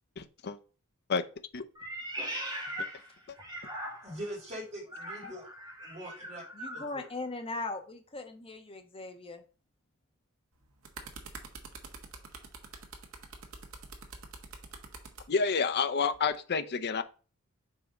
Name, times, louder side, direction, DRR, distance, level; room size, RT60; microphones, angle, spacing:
voice 1, 0.2-0.6 1.1-1.2 1.5-1.6 15.3-17.0, left 5 dB, 50° left, 0.6 m, -29 dB
Meow, 1.7-4.3 4.9-6.9, equal, 20° right, 1.8 m, -40 dB
voice 2, 4.0-6.4 6.7-7.1, equal, 35° right, 3.0 m, -43 dB
voice 3, 6.5-9.4, left 2 dB, 25° left, 1.1 m, -39 dB
sound 1, 10.5-15.3 16.1-16.4, right 4 dB, 75° right, 1.3 m, -46 dB
5.5 x 4.1 x 5.0 m
head